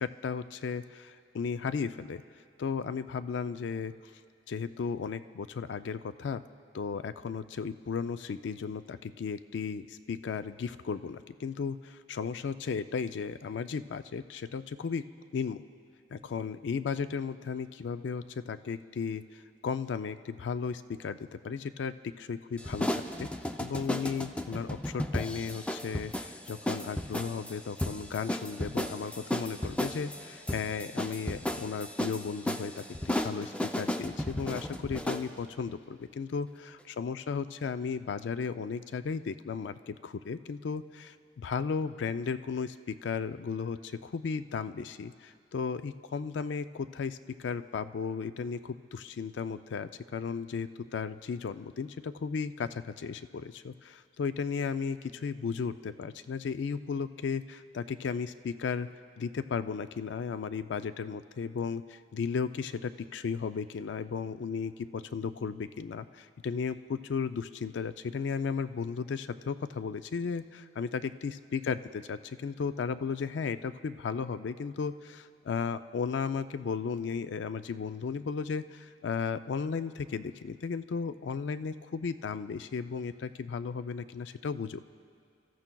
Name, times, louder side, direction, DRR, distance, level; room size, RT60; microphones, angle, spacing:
voice 1, 0.0-2.2 2.6-4.1 4.5-6.4 6.7-15.0 15.3-15.6 16.1-23.3 23.6-36.5 37.0-58.9 59.2-84.9, left 5 dB, 80° left, 12 dB, 0.4 m, -35 dB
sound 1, 22.6-35.3, left 1 dB, 5° left, 0.4 m, -34 dB
30.0 x 14.0 x 2.3 m, 2.2 s
head